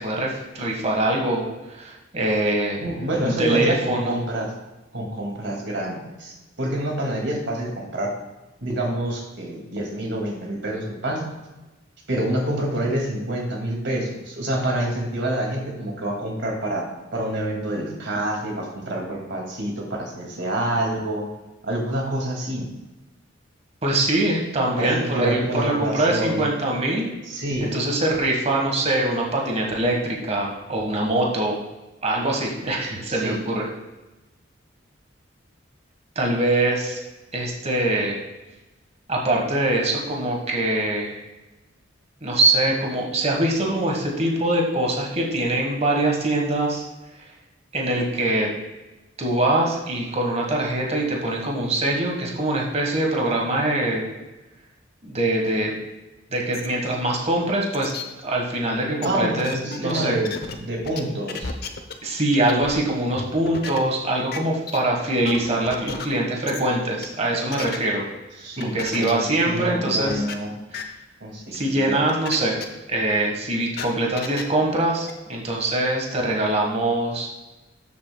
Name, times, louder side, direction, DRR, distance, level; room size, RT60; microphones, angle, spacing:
voice 1, 0.0-1.4 1.7-2.8 3.2-4.1 23.8-27.1 27.6-31.6 32.0-33.7 36.1-37.0 37.3-38.2 39.1-41.2 42.2-46.8 47.7-48.5 49.2-54.1 55.0-55.8 56.3-57.9 58.2-60.1 62.0-68.1 68.6-70.2 70.7-70.8 71.5-72.6 72.9-77.3, right 1 dB, 35° right, -1 dB, 1.5 m, -23 dB
voice 2, 2.8-4.5 4.9-8.1 8.6-11.2 12.1-16.9 17.1-21.2 21.6-22.7 24.8-26.5 27.2-27.8 33.1-33.4 59.0-60.3 60.6-61.5 68.4-70.5 71.2-72.0, right 1 dB, 65° right, 0 dB, 2.2 m, -27 dB
sound 1, 56.5-56.7 57.1-57.2 57.7-58.0 59.0-59.1 59.4-60.5 60.8-61.0 61.3-61.9 62.3-62.8 63.2-63.8 64.3-64.4 64.7-64.8 65.2-66.1 66.5-66.6 67.0-67.8 68.6-69.1 69.4-69.5 70.1-70.3 70.7-70.8 71.5-71.6 72.1-72.4 72.6-72.7 73.2-74.4 75.1-75.2, left 5 dB, 55° left, 0.8 m, -33 dB
12.5 x 7.5 x 2.3 m, 1.1 s
head